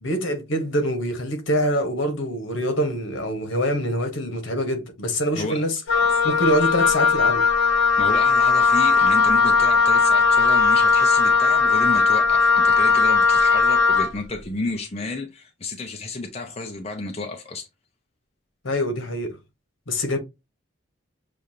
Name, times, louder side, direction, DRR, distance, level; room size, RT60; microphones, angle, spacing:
voice 1, 0.0-5.8 6.2-7.4 18.6-19.4 19.9-20.2, equal, 70° left, 1.3 m, -24 dB
voice 2, 5.3-5.7 8.0-17.7, left 2 dB, 30° left, 0.6 m, -32 dB
Wind instrument woodwind instrument, 5.9-14.1, left 5 dB, 90° left, 0.8 m, -18 dB
6.8 x 2.5 x 2.8 m
head